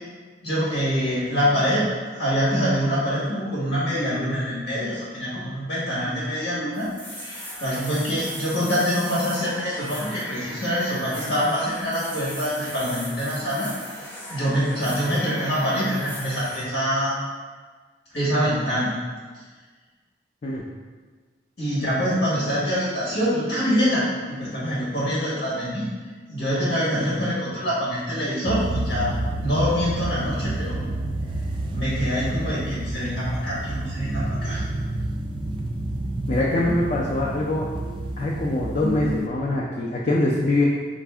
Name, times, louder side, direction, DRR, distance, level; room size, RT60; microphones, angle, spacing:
voice 1, 0.4-1.9 2.1-13.7 14.3-17.2 18.1-18.9 21.6-25.9 26.3-30.8 31.7-34.6, equal, 85° left, -8 dB, 1.3 m, -25 dB
sound 1, 6.7-16.6, equal, 10° left, 0.7 m, -37 dB
sound 2, 28.5-39.3, right 1 dB, 25° right, 0.3 m, -29 dB
voice 2, 36.3-37.7 38.2-40.6, left 2 dB, 45° left, -4 dB, 0.5 m, -23 dB
4.9 x 2.6 x 3.4 m, 1.4 s
head